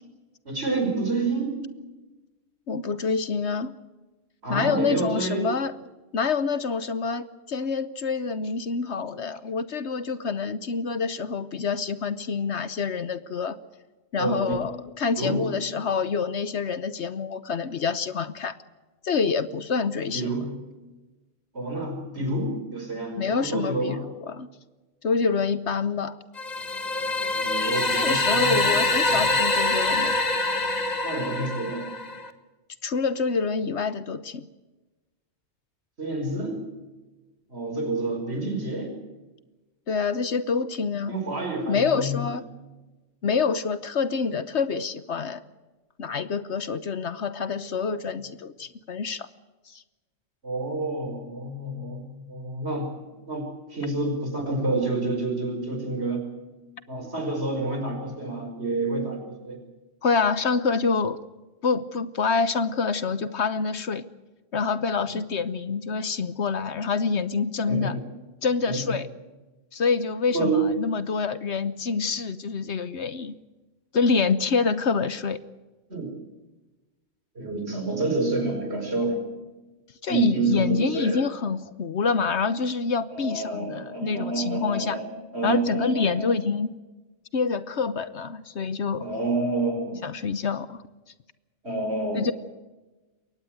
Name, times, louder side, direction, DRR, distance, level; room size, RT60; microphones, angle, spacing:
voice 1, 0.5-1.7 4.4-5.6 14.2-14.6 15.2-15.6 20.1-20.7 21.5-24.1 27.3-29.4 31.0-31.9 36.0-36.6 37.5-38.9 41.1-42.2 50.4-56.3 56.9-59.6 67.7-68.0 68.7-69.0 70.3-70.7 75.9-76.1 77.4-79.4 80.1-81.3 83.1-86.3 89.0-90.1 91.6-92.3, right 2 dB, 55° right, 3 dB, 5.5 m, -29 dB
voice 2, 2.7-3.7 4.5-5.7 6.1-13.6 14.1-18.5 19.0-20.3 23.2-24.5 25.0-26.2 27.9-30.2 32.8-34.5 39.9-41.1 41.7-42.4 43.2-45.4 46.0-49.3 49.7-49.8 60.0-61.2 61.6-64.1 64.5-67.9 68.4-69.1 69.7-73.4 73.9-75.4 80.0-85.0 85.4-86.8 87.3-89.1 90.0-90.8 92.1-92.3, left 5 dB, 60° left, 14 dB, 1.2 m, -26 dB
sound 1, 26.4-32.3, left 2 dB, 35° left, 1.6 m, -25 dB
22.5 x 18.5 x 7.8 m, 1.2 s
omnidirectional pair, 1.3 m